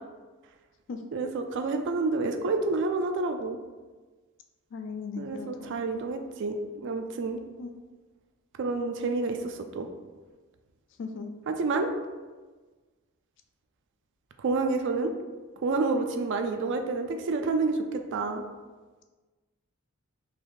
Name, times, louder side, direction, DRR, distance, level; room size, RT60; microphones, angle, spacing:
voice 1, 1.1-3.6 5.2-7.4 8.6-9.9 11.5-11.9 14.4-15.1 15.6-18.4, right 3 dB, 60° right, 6 dB, 0.4 m, -29 dB
voice 2, 4.7-5.8 7.6-7.7 11.0-11.3, left 4 dB, 60° left, 5 dB, 0.4 m, -38 dB
3.9 x 2.6 x 3.1 m, 1.3 s
head